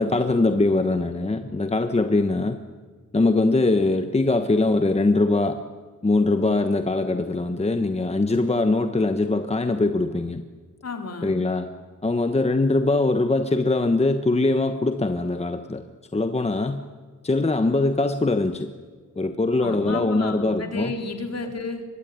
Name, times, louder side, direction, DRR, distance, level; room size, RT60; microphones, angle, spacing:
voice 1, 0.0-2.6 3.1-5.6 6.0-10.4 11.2-11.7 12.0-15.8 16.1-16.8 17.2-18.7 19.2-20.9, left 2 dB, 20° left, 8 dB, 1.2 m, -22 dB
voice 2, 10.8-11.3 19.6-21.9, left 3 dB, 50° left, 5 dB, 3.8 m, -32 dB
24.5 x 20.5 x 9.6 m, 1.5 s
wide cardioid pair, 140°, 32 cm